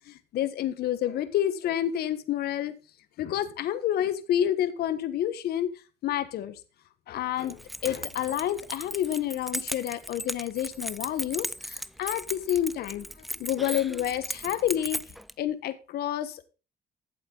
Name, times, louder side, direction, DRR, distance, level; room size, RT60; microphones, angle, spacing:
voice 1, 0.1-2.7 3.2-5.7 6.0-6.6 7.1-13.1 13.4-15.0 15.4-16.4, left 11 dB, 70° left, 12 dB, 1.3 m, -29 dB
Keys jangling, 7.4-15.3, equal, ahead, 0.4 m, -37 dB
13.5 x 7.7 x 3.9 m, 0.34 s
cardioid pair, 110°, 17 cm